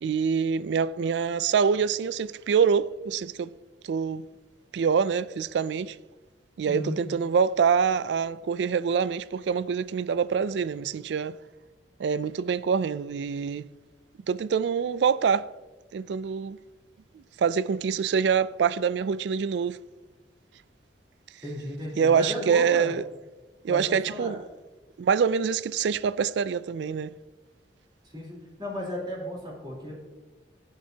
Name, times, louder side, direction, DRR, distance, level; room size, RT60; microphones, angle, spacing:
voice 1, 0.0-3.5 3.8-4.2 4.7-6.0 6.6-11.4 12.0-13.7 14.3-15.5 15.9-16.6 17.1-19.8 22.0-23.0 23.6-24.4 25.0-27.1, right 6 dB, 70° right, 0.3 m, -25 dB
voice 2, 6.6-7.0 21.4-22.9 23.7-24.4 28.1-29.9, left 1 dB, 25° right, 3.5 m, -34 dB
15.0 x 9.5 x 2.8 m
head